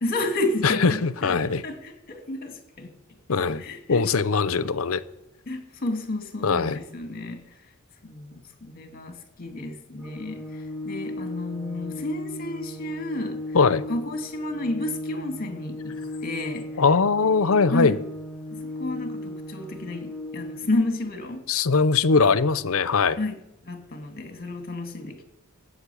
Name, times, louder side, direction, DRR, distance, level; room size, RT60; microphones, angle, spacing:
voice 1, 0.0-2.9 3.5-4.1 5.5-7.6 8.0-13.6 13.9-16.8 17.7-18.0 18.5-21.4 23.2-23.4 23.6-25.2, left 2 dB, 45° left, 2.3 m, -31 dB
voice 2, 0.6-1.6 3.3-3.6 3.9-5.0 6.4-6.8 13.5-13.8 16.8-18.0 21.5-23.2, left 4 dB, 80° left, 0.7 m, -21 dB
Organ, 10.0-21.0, left 1 dB, 5° right, 1.7 m, -36 dB
15.0 x 8.6 x 8.4 m
head